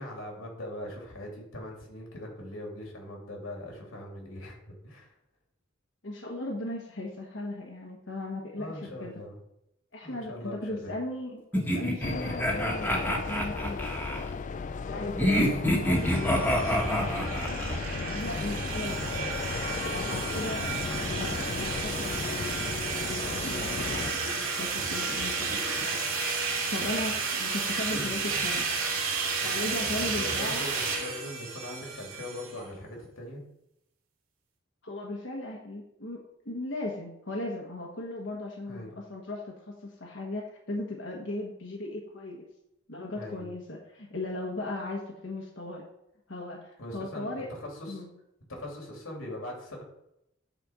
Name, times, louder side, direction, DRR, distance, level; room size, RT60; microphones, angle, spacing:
voice 1, 0.0-5.1 8.6-9.4 10.0-10.9 18.4-18.6 29.4-29.7 30.2-33.4 38.7-38.9 43.2-43.4 46.8-48.0 48.5-49.8, left 1 dB, 85° left, 0 dB, 3.0 m, -41 dB
voice 2, 6.0-9.1 9.9-13.8 14.8-17.6 18.0-26.0 26.7-28.7 29.4-30.6 34.8-42.4 42.9-45.9 46.3-47.5 47.9-48.1, left 2 dB, 60° left, -1 dB, 1.3 m, -37 dB
sound 1, 11.5-14.2 15.2-17.8, equal, 10° left, 1.4 m, -27 dB
sound 2, 12.0-24.1, left 4 dB, 35° left, 0.3 m, -35 dB
sound 3, 15.8-32.6, right 4 dB, 80° right, 2.5 m, -32 dB
9.2 x 4.4 x 6.3 m, 0.81 s
head